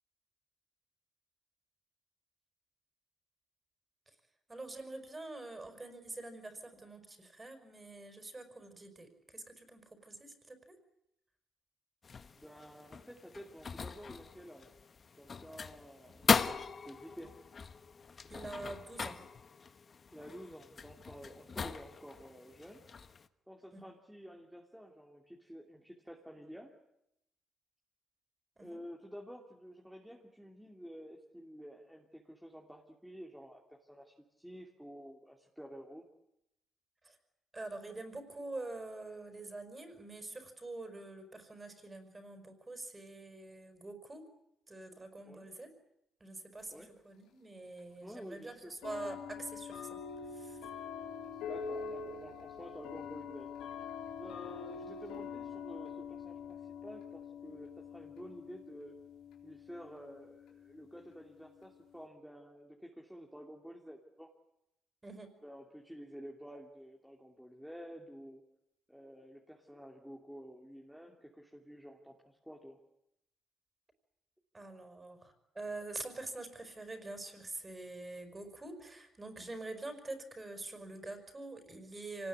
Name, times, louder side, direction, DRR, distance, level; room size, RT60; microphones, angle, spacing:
voice 1, 4.5-10.8 18.3-19.2 23.7-23.8 28.6-28.8 37.0-37.2 37.5-44.2 44.7-45.7 46.2-46.7 47.0-50.0 50.3-50.6 54.8-54.9 65.0-65.3 74.5-82.3, right 2 dB, 20° right, 8 dB, 5.3 m, -45 dB
sound 1, 12.0-23.3, left 5 dB, 40° left, 1.2 m, -38 dB
voice 2, 12.4-14.7 15.2-17.3 20.1-22.8 23.5-26.7 28.6-36.0 45.2-45.5 46.7-46.9 48.0-48.7 51.4-53.5 54.1-59.0 59.4-64.3 65.4-68.4 68.9-72.8, equal, ahead, -1 dB, 2.7 m, -51 dB
sound 2, 46.6-46.7 47.8-47.9 48.8-62.0, left 6 dB, 90° left, 3.7 m, -45 dB
25.0 x 19.0 x 9.5 m, 0.82 s
cardioid pair, 90°, 0 cm